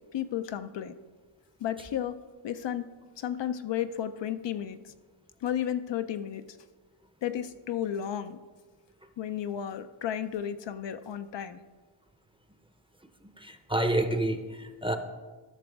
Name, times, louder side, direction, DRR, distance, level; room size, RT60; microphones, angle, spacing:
voice 1, 0.1-0.9 1.6-2.2 2.4-2.9 3.2-4.9 5.4-6.4 7.2-8.4 9.2-11.6, left 10 dB, 65° left, 10 dB, 0.6 m, -33 dB
voice 2, 13.2-15.0, right 1 dB, 10° right, 7 dB, 0.6 m, -29 dB
14.5 x 6.1 x 3.4 m, 1.4 s
cardioid pair, 85°, 47 cm